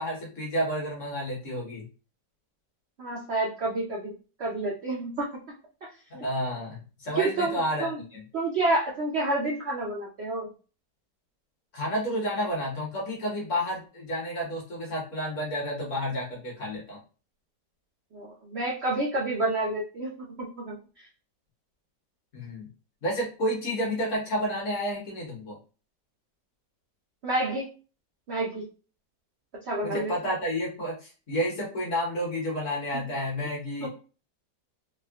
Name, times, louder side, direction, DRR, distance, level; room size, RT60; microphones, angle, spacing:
voice 1, 0.0-1.9 6.1-8.2 11.7-17.0 22.3-22.7 23.0-25.6 29.8-33.9, equal, 50° left, -2 dB, 1.1 m, -30 dB
voice 2, 3.0-5.4 7.1-8.0 8.3-10.5 18.1-20.8 27.2-27.7 28.3-28.6 29.7-30.1 32.9-33.0 33.8-33.9, right 2 dB, 70° right, -3 dB, 0.6 m, -29 dB
3.5 x 2.1 x 2.2 m, 0.35 s
omnidirectional pair, 1.9 m